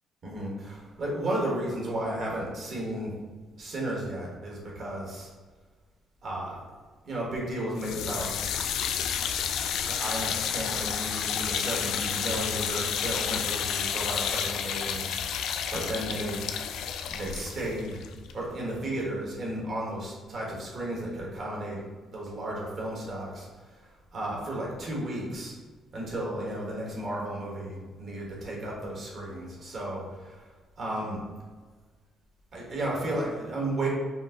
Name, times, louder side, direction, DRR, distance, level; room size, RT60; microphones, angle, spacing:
voice 1, 0.2-3.1 3.6-5.3 6.2-6.6 7.0-8.4 9.8-16.4 17.1-18.0 18.3-21.8 22.1-23.5 23.7-25.6 25.9-30.5 30.8-31.2 32.5-33.9, right 1 dB, 40° right, -3 dB, 1.3 m, -33 dB
sound 1, 7.8-18.9, left 8 dB, 80° left, 0.3 m, -31 dB
5.3 x 2.6 x 3.7 m, 1.4 s
cardioid pair, 165°, 0 cm